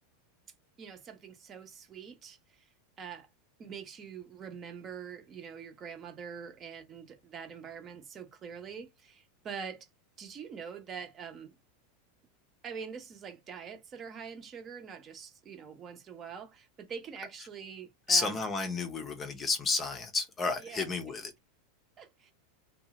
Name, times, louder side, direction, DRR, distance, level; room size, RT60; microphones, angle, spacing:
voice 1, 0.8-2.4 3.0-3.3 3.6-9.9 10.2-11.6 12.6-18.5 20.6-21.1 22.0-22.3, right 6 dB, 30° right, 0.8 m, -44 dB
voice 2, 18.1-21.3, left 3 dB, 25° left, 0.6 m, -31 dB
2.6 x 2.3 x 2.9 m
supercardioid pair, 130°, 0 cm